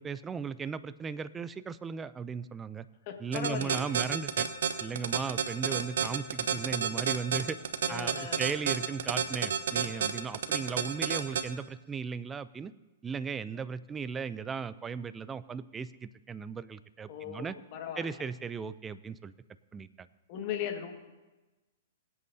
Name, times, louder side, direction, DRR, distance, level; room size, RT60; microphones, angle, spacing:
voice 1, 0.0-2.9 3.2-4.5 4.8-7.6 7.9-12.7 13.0-17.5 18.0-19.3 19.7-20.1, right 6 dB, 15° right, 14 dB, 0.4 m, -36 dB
voice 2, 3.1-3.8 7.8-8.4 17.1-18.2 20.3-20.9, left 8 dB, 45° left, 4 dB, 1.8 m, -37 dB
sound 1, 3.3-11.4, right 8 dB, 75° right, 1.1 m, -29 dB
24.0 x 8.3 x 2.8 m, 1.1 s
hypercardioid pair, 130°, 0 cm